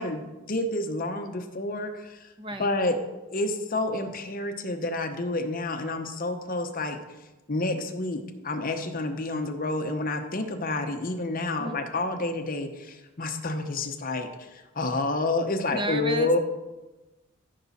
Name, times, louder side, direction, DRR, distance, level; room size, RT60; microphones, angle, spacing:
voice 1, 0.0-2.3 2.6-3.0 3.3-7.0 7.5-16.4, left 2 dB, 40° left, 6 dB, 0.8 m, -29 dB
voice 2, 2.4-2.7 11.6-11.8 15.7-16.4, right 1 dB, 25° right, 7 dB, 0.7 m, -32 dB
14.0 x 5.9 x 4.2 m, 1.1 s
head